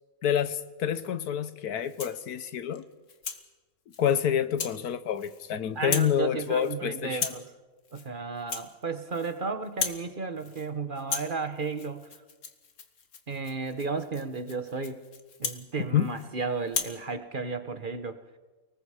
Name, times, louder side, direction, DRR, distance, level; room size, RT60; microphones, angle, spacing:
voice 1, 0.2-2.8 4.0-7.3 15.9-16.1, left 9 dB, 90° left, 13 dB, 1.5 m, -28 dB
Rattle (instrument), 1.8-2.2 2.7-3.4 3.9-4.1 4.6-4.8 5.1-5.5 5.8-6.2 6.4-6.8 7.1-7.5 7.8-8.1 8.4-9.4 9.6-10.1 10.4-10.7 11.0-16.3 16.6-17.0, left 6 dB, 55° left, 1.7 m, -37 dB
voice 2, 5.8-7.5 7.9-12.1 13.3-15.0 15.4-18.2, right 4 dB, 40° right, 10 dB, 1.1 m, -33 dB
29.5 x 19.5 x 4.9 m, 1.3 s
omnidirectional pair, 1.6 m